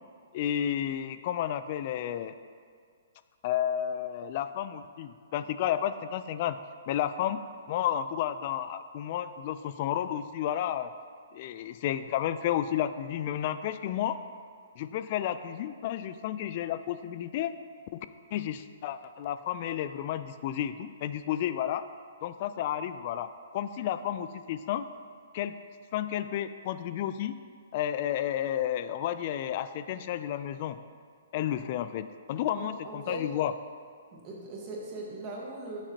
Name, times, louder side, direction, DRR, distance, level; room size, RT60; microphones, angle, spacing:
voice 1, 0.3-2.3 3.4-6.6 6.9-10.9 11.3-14.2 14.8-17.5 17.9-21.9 22.2-24.9 25.3-25.6 25.9-27.4 27.7-30.8 31.3-33.5, left 10 dB, 35° left, 12 dB, 0.3 m, -32 dB
voice 2, 32.5-33.2 34.1-35.8, right 2 dB, 25° right, -3 dB, 1.4 m, -40 dB
10.5 x 7.1 x 2.8 m, 2.1 s
hypercardioid pair, 165°, 0 cm